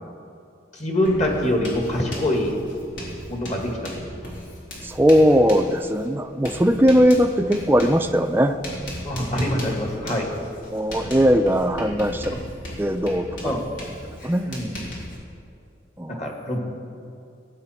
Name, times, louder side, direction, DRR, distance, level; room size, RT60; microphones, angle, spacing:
voice 1, 0.7-2.6 3.3-3.9 9.0-10.3 11.1-11.2 13.4-13.6 14.5-14.8 16.1-16.6, left 1 dB, 40° left, 1 dB, 1.9 m, -24 dB
Writing, 1.0-15.2, left 1 dB, 80° left, 3.6 m, -37 dB
voice 2, 4.8-8.6 10.7-12.3 12.8-13.5 14.2-14.6 16.0-16.2, equal, 10° right, 7 dB, 0.4 m, -19 dB
19.0 x 9.0 x 4.4 m, 2.6 s
head